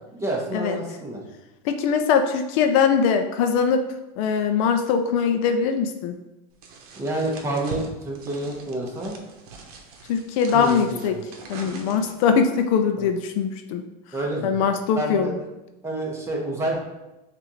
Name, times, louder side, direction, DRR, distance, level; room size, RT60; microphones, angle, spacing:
voice 1, 0.1-1.2 7.0-9.2 10.5-11.1 13.0-13.1 14.1-14.7 14.9-15.3 15.8-16.8, right 1 dB, 15° right, -1 dB, 1.0 m, -28 dB
voice 2, 1.6-3.8 4.2-6.2 10.1-11.2 11.5-13.8 14.4-15.3, left 6 dB, 60° left, 7 dB, 0.5 m, -21 dB
sound 1, 6.6-12.3, right 4 dB, 70° right, 0.9 m, -41 dB
6.5 x 2.5 x 3.1 m, 0.97 s
supercardioid pair, 130°, 20 cm